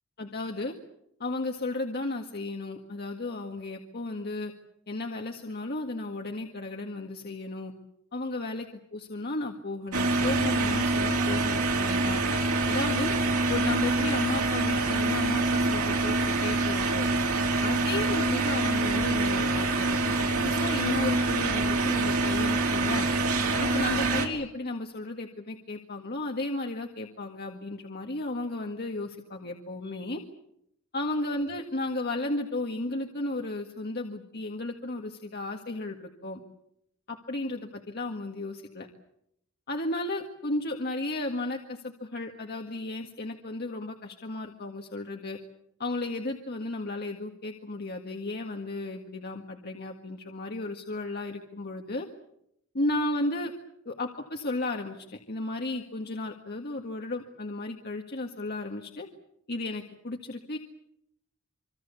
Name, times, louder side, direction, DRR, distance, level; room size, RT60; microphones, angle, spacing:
voice 1, 0.2-0.7 1.2-4.5 4.9-7.7 8.1-12.2 12.7-13.1 13.5-17.1 17.6-23.1 23.6-30.2 30.9-36.4 37.1-38.9 39.7-45.4 45.8-52.1 52.7-53.5 53.9-59.1 59.5-60.6, left 2 dB, 50° left, 2 dB, 1.8 m, -34 dB
sound 1, 9.9-24.3, right 2 dB, 85° right, 4.4 m, -26 dB
26.5 x 24.5 x 7.0 m, 0.76 s
head